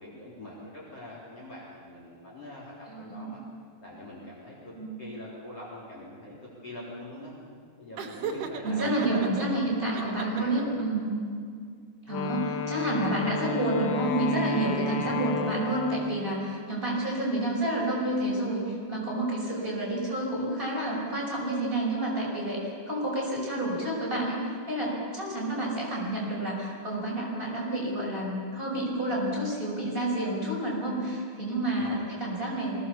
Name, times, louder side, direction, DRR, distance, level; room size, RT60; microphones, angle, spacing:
voice 1, 0.0-3.4 3.8-4.7 5.0-6.4 6.6-7.3 7.8-10.8 15.0-15.3 31.8-32.1, left 1 dB, 35° left, -5 dB, 4.3 m, -44 dB
voice 2, 2.9-3.3 4.8-4.9 8.6-11.1 12.1-24.4 24.7-32.8, right 1 dB, 10° right, -5 dB, 5.6 m, -29 dB
Laughter, 8.0-9.5 9.9-10.8, right 6 dB, 65° right, 2.2 m, -36 dB
Wind instrument woodwind instrument, 12.1-16.4, left 6 dB, 75° left, 1.8 m, -33 dB
23.0 x 18.5 x 7.1 m, 2.2 s
omnidirectional pair, 5.1 m